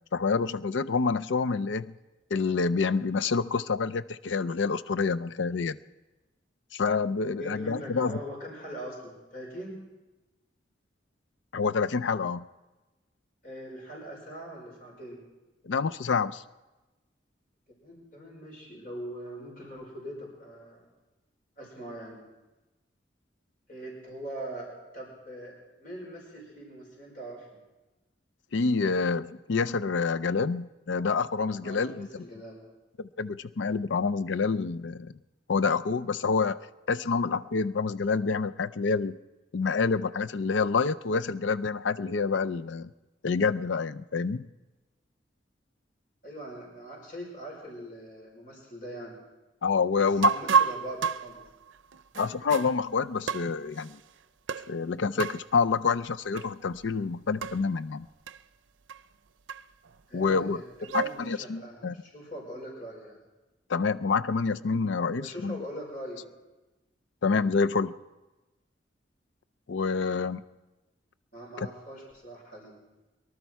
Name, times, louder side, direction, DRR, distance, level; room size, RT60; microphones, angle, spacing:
voice 1, 0.1-1.9 2.3-5.8 6.7-8.2 11.5-12.5 15.6-16.4 28.5-32.2 33.0-35.1 35.5-36.6 36.9-39.2 39.5-42.9 43.2-44.5 49.6-50.3 52.2-54.0 54.7-58.1 60.1-60.6 60.9-61.9 63.7-65.6 67.2-67.9 69.7-70.4 71.6-71.7, left 4 dB, 75° left, 13 dB, 0.5 m, -27 dB
voice 2, 7.4-9.8 13.4-15.2 17.8-20.8 21.6-22.2 23.7-27.6 31.6-32.6 46.2-49.2 50.0-51.4 60.1-63.2 65.1-66.3 71.3-72.8, right 1 dB, 45° left, -2 dB, 5.4 m, -42 dB
sound 1, 50.2-52.8 53.3-53.9 54.5-54.8 55.2-55.5 56.3-56.5 56.8-56.9 57.4-57.7 58.3-58.4 58.9-59.0 59.5-59.9 60.6-61.3, right 6 dB, 80° right, 0.5 m, -29 dB
23.0 x 12.0 x 4.6 m, 1.1 s
head